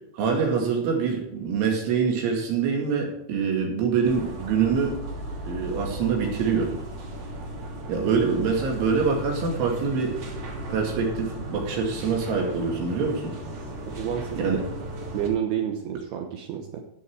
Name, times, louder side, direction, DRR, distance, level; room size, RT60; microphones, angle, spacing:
voice 1, 0.1-5.0 5.5-6.8 7.9-10.2 10.7-13.3 14.4-14.6, right 5 dB, 90° right, 0 dB, 4.8 m, -25 dB
sound 1, 4.0-15.3, right 1 dB, 50° right, 4.0 m, -36 dB
voice 2, 13.9-14.4 15.1-16.8, right 9 dB, 75° right, 3 dB, 2.6 m, -29 dB
13.0 x 7.6 x 4.8 m, 0.80 s
omnidirectional pair, 5.4 m